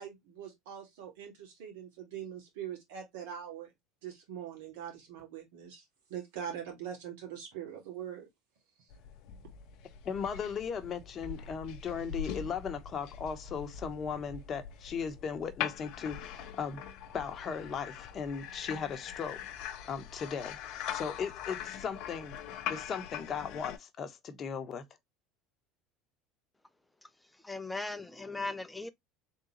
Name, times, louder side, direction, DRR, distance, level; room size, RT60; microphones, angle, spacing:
voice 1, 0.0-3.7 4.0-5.8 6.1-8.3, right 9 dB, 75° right, 2.2 m, -42 dB
sound 1, 8.9-23.8, left 9 dB, 60° left, 0.6 m, -42 dB
voice 2, 10.0-16.8 17.1-19.4 19.9-22.4 22.7-24.8, left 6 dB, 40° left, 1.0 m, -37 dB
voice 3, 27.0-28.9, left 3 dB, 10° left, 0.7 m, -39 dB
3.7 x 3.6 x 2.9 m
hypercardioid pair, 80°, 0 cm